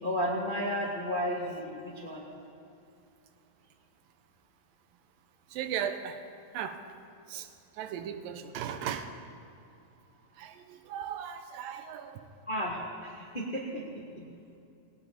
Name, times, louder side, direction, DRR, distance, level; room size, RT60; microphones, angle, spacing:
voice 1, 0.0-2.3 12.5-14.3, equal, 35° left, -3 dB, 0.7 m, -33 dB
voice 2, 5.5-6.2 6.5-6.8 7.3-7.5 7.7-9.1 10.4-12.3, right 8 dB, 80° right, 8 dB, 2.4 m, -37 dB
18.0 x 18.0 x 4.2 m, 2.6 s
omnidirectional pair, 4.1 m